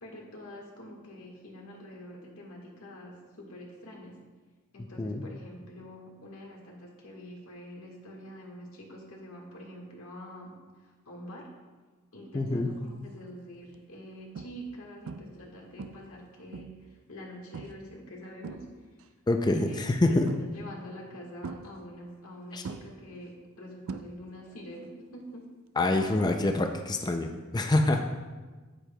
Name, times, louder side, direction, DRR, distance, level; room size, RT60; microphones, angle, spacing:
voice 1, 0.0-4.1 4.7-11.5 12.1-19.1 19.5-25.4 27.8-28.0, equal, 85° left, -2 dB, 1.6 m, -46 dB
voice 2, 12.3-12.7 19.3-20.3 22.5-22.6 25.8-28.0, left 2 dB, 20° left, 5 dB, 0.4 m, -26 dB
sound 1, 12.7-13.0 13.6-13.8 14.3-14.8 15.1-15.5 15.8-16.9 17.5-17.9 18.2-19.1 20.3-20.8 21.4-22.3 22.6-24.5 24.8-25.2 27.3-27.4, right 5 dB, 65° right, 0.3 m, -42 dB
9.0 x 8.6 x 2.2 m, 1.3 s
head